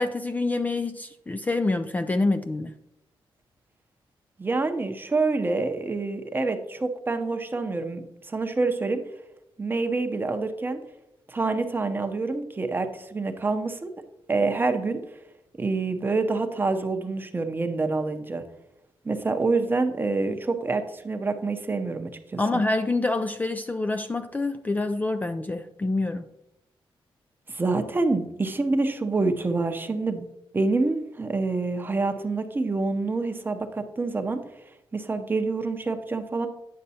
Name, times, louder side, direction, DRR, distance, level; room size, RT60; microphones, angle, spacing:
voice 1, 0.0-2.7 22.4-26.3, left 2 dB, 15° left, 8 dB, 0.3 m, -26 dB
voice 2, 4.4-9.0 9.6-10.8 11.3-13.9 14.3-15.0 15.6-18.4 19.0-22.6 27.5-30.3 30.5-34.4 34.9-36.5, right 3 dB, 20° right, 7 dB, 0.7 m, -27 dB
9.3 x 6.5 x 2.8 m, 0.85 s
cardioid pair, 115°, 9 cm